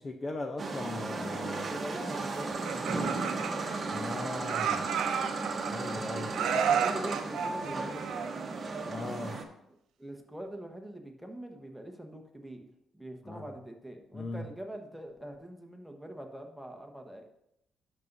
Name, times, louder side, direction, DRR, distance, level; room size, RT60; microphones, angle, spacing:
voice 1, 0.0-1.8 3.9-5.0 5.7-6.3 8.9-9.4 13.2-13.5 14.1-14.5, left 2 dB, 30° left, 5 dB, 0.6 m, -39 dB
sound 1, 0.6-9.4, right 3 dB, 35° right, 1.0 m, -35 dB
voice 2, 1.7-3.0 5.7-8.4 8.7-9.0 9.7-12.7 12.9-17.2, right 1 dB, ahead, 2 dB, 1.2 m, -44 dB
Laughter, 2.5-4.1 4.5-5.9 6.3-8.6, right 8 dB, 80° right, 0.6 m, -32 dB
12.0 x 5.4 x 2.7 m, 0.78 s
cardioid pair, 90°, 0 cm